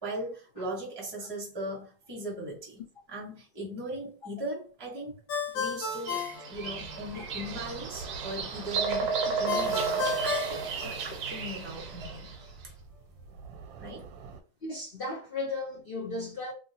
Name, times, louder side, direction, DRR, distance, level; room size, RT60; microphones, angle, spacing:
voice 1, 0.0-2.8 3.1-5.2 5.5-6.2 6.5-12.3 13.8-14.0, equal, 15° right, 0.9 m, -38 dB
Ringtone, 5.3-7.2 9.5-11.4, left 5 dB, 90° left, 1.5 m, -34 dB
Bird vocalization bird call bird song, 5.8-12.4, right 5 dB, 60° right, 0.9 m, -33 dB
sound 1, 6.5-14.4, right 5 dB, 85° right, 1.3 m, -46 dB
voice 2, 14.6-16.5, left 2 dB, 75° left, 0.5 m, -35 dB
2.9 x 2.8 x 2.7 m
omnidirectional pair, 2.0 m